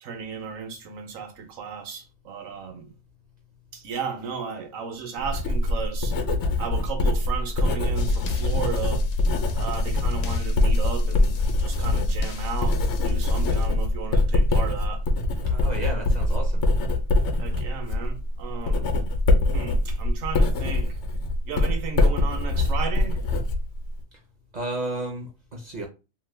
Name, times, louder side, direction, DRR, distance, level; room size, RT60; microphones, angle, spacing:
voice 1, 0.0-2.9 3.7-6.2 6.6-9.0 9.6-15.1 17.3-18.9 19.5-21.0 21.5-23.2, right 6 dB, 85° right, 1.1 m, -34 dB
Writing, 5.2-24.0, left 2 dB, 65° left, 0.9 m, -24 dB
sound 1, 8.0-13.7, left 4 dB, 90° left, 1.0 m, -30 dB
voice 2, 15.5-16.6 24.5-25.9, right 2 dB, 50° right, 0.5 m, -32 dB
2.9 x 2.2 x 3.2 m
omnidirectional pair, 1.4 m